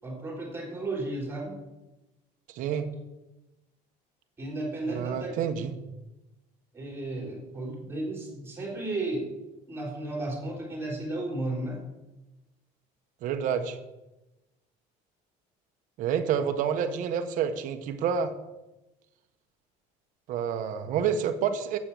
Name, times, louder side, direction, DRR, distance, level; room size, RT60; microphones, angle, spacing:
voice 1, 0.0-1.6 4.4-5.4 6.7-9.3 9.7-11.8, right 2 dB, 15° right, 0 dB, 3.7 m, -34 dB
voice 2, 2.5-2.9 4.9-5.7 13.2-13.8 16.0-18.3 20.3-21.8, right 7 dB, 50° right, 7 dB, 1.4 m, -28 dB
14.0 x 8.7 x 7.2 m, 1.0 s
cardioid pair, 180°, 17 cm